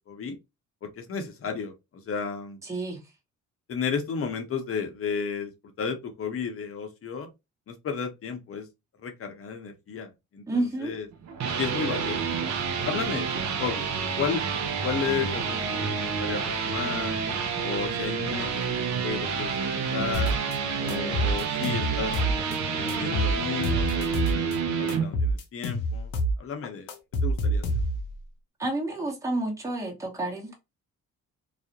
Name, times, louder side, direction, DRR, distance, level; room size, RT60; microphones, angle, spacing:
voice 1, 0.1-0.4 0.8-2.6 3.7-5.5 5.8-7.3 7.7-8.7 9.0-11.1 11.6-12.3 12.8-13.3 13.6-14.4 14.8-17.1 17.6-18.6 18.9-20.3 20.8-22.4 22.8-24.5 24.8-26.1 26.4-26.9 27.2-27.6, left 6 dB, 45° left, 0.8 m, -33 dB
voice 2, 2.6-3.0 10.5-10.9 28.6-30.5, right 2 dB, 10° right, 0.9 m, -30 dB
sound 1, 11.1-25.0, right 6 dB, 65° right, 0.6 m, -29 dB
sound 2, 20.1-20.6 20.9-22.6 22.9-24.6 24.9-26.4 26.6-28.1, right 1 dB, 80° left, 0.7 m, -27 dB
2.4 x 2.0 x 2.7 m
cardioid pair, 90°, 30 cm